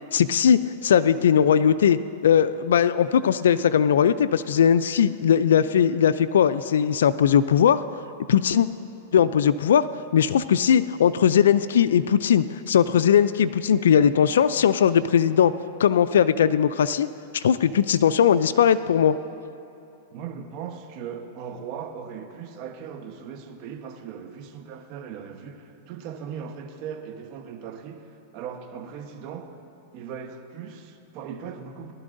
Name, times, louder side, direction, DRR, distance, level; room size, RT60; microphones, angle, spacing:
voice 1, 0.1-7.8 8.3-8.7 9.1-9.9 10.1-15.5 15.8-17.1 17.3-19.1, left 8 dB, 85° left, 13 dB, 0.3 m, -19 dB
voice 2, 20.1-29.5 29.9-31.9, right 7 dB, 50° right, 5 dB, 1.0 m, -38 dB
19.0 x 12.0 x 2.6 m, 2.7 s
hypercardioid pair, 135°, 0 cm